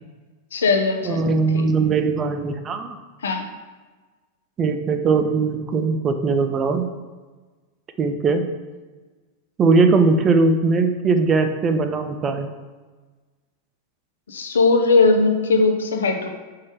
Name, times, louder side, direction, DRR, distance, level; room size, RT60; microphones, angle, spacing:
voice 1, 0.5-1.7 3.2-3.4 14.3-16.3, left 3 dB, 65° left, 5 dB, 0.8 m, -19 dB
voice 2, 1.0-3.0 4.6-6.9 8.0-8.5 9.6-12.5, right 4 dB, 25° right, 7 dB, 0.6 m, -20 dB
5.5 x 4.7 x 4.6 m, 1.3 s
figure-of-eight pair, 90°, 0 cm